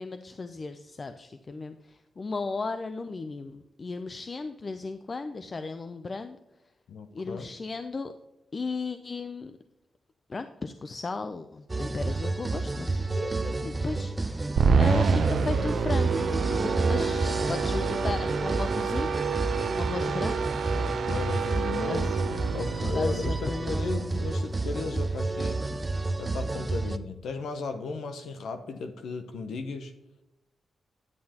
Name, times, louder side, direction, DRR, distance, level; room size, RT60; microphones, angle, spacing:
voice 1, 0.0-6.4 7.1-8.1 8.5-9.6 10.3-14.5 14.8-19.1 19.7-20.4 20.7-20.8 21.9-22.2 22.7-23.9, left 3 dB, 45° left, 9 dB, 0.4 m, -35 dB
voice 2, 6.9-7.5 15.3-15.5 17.0-17.2 21.1-25.6 26.2-29.9, left 4 dB, 85° left, 7 dB, 0.6 m, -36 dB
sound 1, 11.7-27.0, right 2 dB, 25° right, 0.5 m, -30 dB
sound 2, 14.6-23.9, right 5 dB, 75° right, 0.6 m, -28 dB
10.5 x 7.6 x 2.9 m, 0.95 s
cardioid pair, 65°, 0 cm